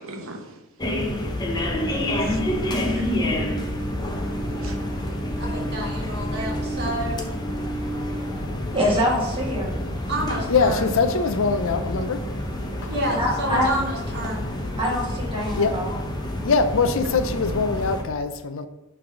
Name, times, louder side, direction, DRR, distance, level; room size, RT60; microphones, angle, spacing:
voice 1, 0.0-3.2 4.6-4.8 6.4-6.5 6.8-7.0 7.5-7.6 8.6-8.7, right 2 dB, 65° right, 0.9 m, -43 dB
sound 1, 0.8-18.0, left 1 dB, 20° left, 0.6 m, -28 dB
sound 2, 2.2-8.4, right 1 dB, 5° right, 1.1 m, -35 dB
voice 2, 5.4-7.3 8.9-9.0 10.1-10.9 12.9-14.4, right 1 dB, 50° right, 2.0 m, -29 dB
voice 3, 8.7-9.7 13.2-13.7 14.8-16.0, equal, 25° right, 1.6 m, -24 dB
voice 4, 10.5-12.2 12.8-12.9 15.6-15.7 16.4-18.7, left 4 dB, 65° left, 0.5 m, -22 dB
5.8 x 3.4 x 5.2 m
head